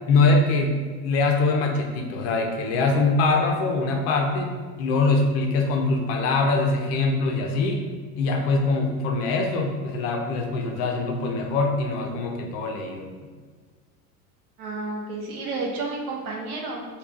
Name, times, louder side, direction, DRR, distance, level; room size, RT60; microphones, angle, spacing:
voice 1, 0.1-4.5 4.8-7.8 8.2-13.1, left 3 dB, 35° left, 2 dB, 0.5 m, -23 dB
voice 2, 14.6-17.0, right 3 dB, 65° right, -1 dB, 0.9 m, -31 dB
3.3 x 2.3 x 3.6 m, 1.5 s
figure-of-eight pair, 75°, 46 cm